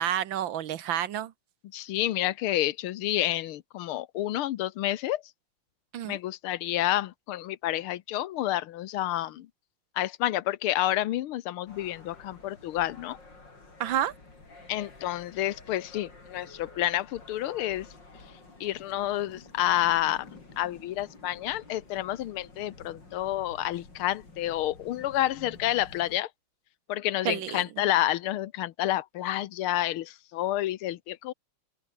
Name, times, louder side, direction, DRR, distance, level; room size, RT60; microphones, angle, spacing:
voice 1, 0.0-1.3 5.9-6.2 13.8-14.1 27.2-27.6, right 11 dB, 70° right, 1.7 m, -29 dB
voice 2, 1.7-5.2 6.1-9.5 10.0-13.2 14.7-17.9 18.6-20.3 20.6-26.3 26.9-31.3, left 14 dB, 90° left, 1.7 m, -29 dB
sound 1, 11.7-26.2, left 3 dB, 55° left, 6.1 m, -51 dB
open air
omnidirectional pair, 2.3 m